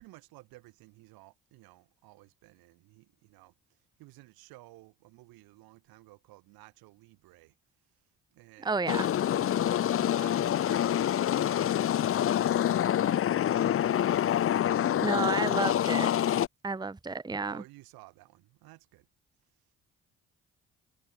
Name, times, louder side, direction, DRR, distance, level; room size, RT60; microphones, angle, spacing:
voice 1, 0.0-7.5 8.3-8.8 9.4-13.9 14.8-15.4 17.5-19.1, right 21 dB, 80° right, 8.0 m, -55 dB
voice 2, 8.6-9.1 15.0-16.1 16.6-17.6, right 4 dB, 10° right, 0.9 m, -31 dB
sound 1, 8.9-16.5, left 11 dB, 40° left, 0.5 m, -26 dB
hypercardioid pair, 50°, 36 cm